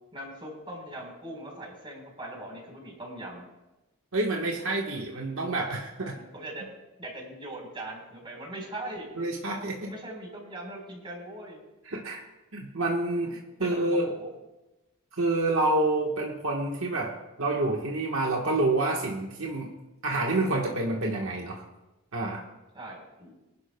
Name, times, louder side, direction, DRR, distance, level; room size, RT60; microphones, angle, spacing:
voice 1, 0.1-3.4 6.1-6.6 7.0-9.2 9.8-11.6 13.2-14.3 22.7-23.4, right 1 dB, 25° right, -1 dB, 4.1 m, -41 dB
voice 2, 4.1-6.2 9.2-9.9 11.8-12.2 12.5-14.1 15.2-19.7 20.0-21.6 22.1-22.4, right 2 dB, 65° right, 0 dB, 1.3 m, -28 dB
24.0 x 11.0 x 2.2 m, 1.0 s
head